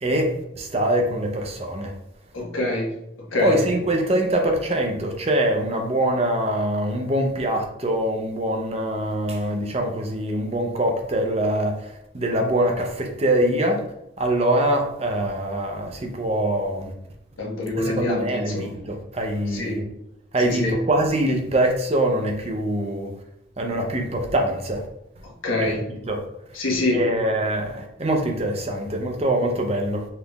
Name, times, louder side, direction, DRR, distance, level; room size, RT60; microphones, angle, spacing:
voice 1, 0.0-1.9 3.4-13.8 14.2-16.9 17.8-19.9 20.3-23.1 23.6-24.8 25.6-25.7 26.1-26.2 26.9-30.1, right 1 dB, 30° right, 3 dB, 0.6 m, -24 dB
voice 2, 2.3-2.9 3.3-3.6 17.4-18.7 19.5-19.8 20.4-20.8 25.4-25.8 26.5-27.0, left 2 dB, 85° left, -2 dB, 1.2 m, -25 dB
5.7 x 3.5 x 2.3 m, 0.81 s
head